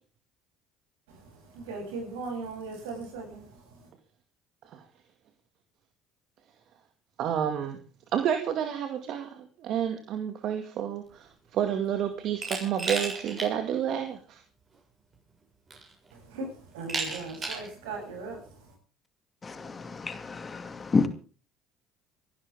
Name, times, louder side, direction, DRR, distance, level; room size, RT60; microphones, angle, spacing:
voice 1, 1.1-3.9 16.1-18.7, right 3 dB, 90° right, 1 dB, 8.0 m, -39 dB
voice 2, 7.2-7.8 8.1-14.4, right 9 dB, 60° right, 6 dB, 2.1 m, -30 dB
Glass, 12.4-13.5 13.9-14.0 15.1-15.2 15.7-16.1 16.9-17.7, right 3 dB, 35° right, 7.2 m, -33 dB
voice 3, 19.6-21.1, left 4 dB, 30° left, 9 dB, 2.4 m, -29 dB
26.0 x 12.0 x 3.6 m, 0.37 s
supercardioid pair, 80°, 0 cm